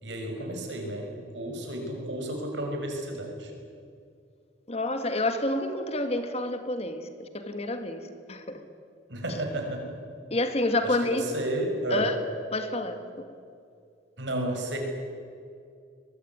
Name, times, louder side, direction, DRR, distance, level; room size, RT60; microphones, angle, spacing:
voice 1, 0.0-3.5 9.1-10.0 10.8-12.1 14.2-14.8, right 1 dB, 70° right, 3 dB, 5.9 m, -32 dB
voice 2, 4.7-8.6 10.3-11.2 11.9-12.2 12.5-13.0, left 2 dB, 35° left, 8 dB, 1.9 m, -29 dB
23.0 x 22.0 x 9.6 m, 2.4 s
head